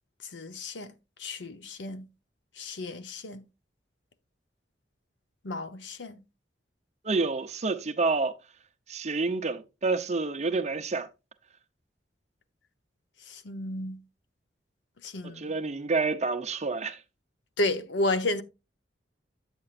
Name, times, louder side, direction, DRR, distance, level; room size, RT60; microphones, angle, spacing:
voice 1, 0.3-0.9 1.2-2.1 2.6-3.4 5.4-6.2 13.3-14.0 15.0-15.4 17.6-18.4, left 2 dB, 85° left, 0.8 m, -32 dB
voice 2, 7.0-8.3 8.9-11.1 15.2-17.0, right 3 dB, 40° right, 0.7 m, -28 dB
8.7 x 8.0 x 2.5 m
head